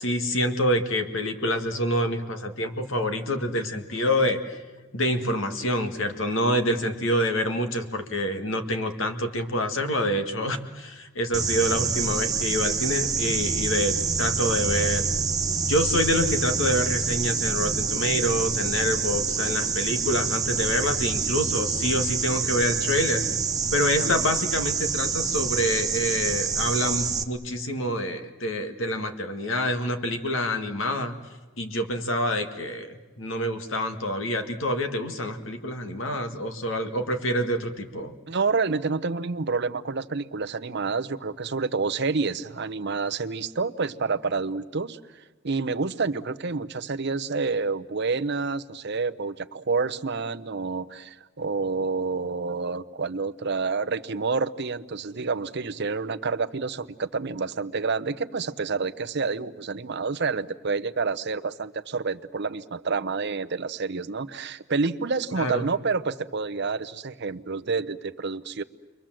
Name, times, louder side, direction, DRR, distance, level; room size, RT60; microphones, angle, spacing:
voice 1, 0.0-4.6 4.9-15.0 15.7-23.2 23.7-31.2 31.6-38.1 65.4-65.7, left 1 dB, 65° left, 6 dB, 1.9 m, -27 dB
sound 1, 11.3-27.2, right 5 dB, 20° right, 1.0 m, -27 dB
voice 2, 38.3-68.6, right 4 dB, 55° right, 11 dB, 0.8 m, -28 dB
29.0 x 23.5 x 7.6 m, 1.3 s
head